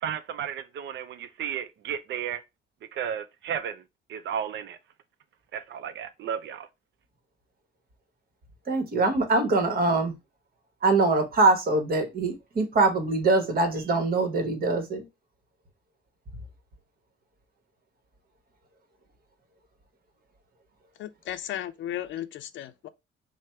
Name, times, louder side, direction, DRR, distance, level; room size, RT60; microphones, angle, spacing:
voice 1, 0.0-2.4 2.9-3.8 4.1-4.8 5.5-6.7, right 8 dB, 65° right, 0.4 m, -33 dB
voice 2, 8.7-10.1 10.8-15.0, right 3 dB, 50° right, 1.0 m, -23 dB
voice 3, 21.0-22.9, left 12 dB, 70° left, 0.4 m, -35 dB
3.3 x 2.1 x 4.2 m
cardioid pair, 90°, 20 cm